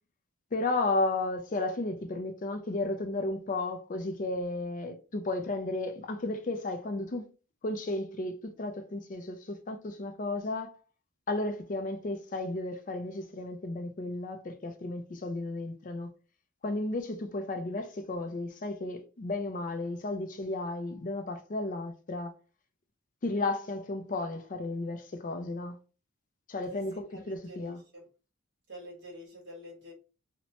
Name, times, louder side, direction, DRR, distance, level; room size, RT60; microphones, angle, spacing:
voice 1, 0.5-7.3 7.6-10.7 11.3-16.1 16.6-22.3 23.2-25.8 26.5-27.8, left 2 dB, 35° left, 0.4 m, -33 dB
voice 2, 26.7-28.0 28.7-29.9, equal, 50° right, 1.2 m, -48 dB
2.9 x 2.1 x 2.8 m
head